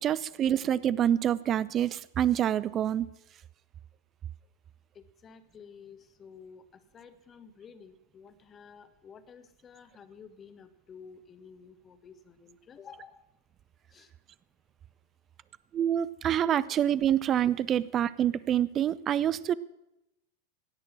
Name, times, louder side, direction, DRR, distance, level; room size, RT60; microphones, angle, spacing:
voice 1, 0.0-3.1 15.7-19.5, right 10 dB, 30° right, 19 dB, 0.4 m, -26 dB
voice 2, 4.9-13.2 13.9-14.1, left 6 dB, 25° left, 10 dB, 1.1 m, -52 dB
16.5 x 6.6 x 7.3 m, 0.91 s
figure-of-eight pair, 90°, 0 cm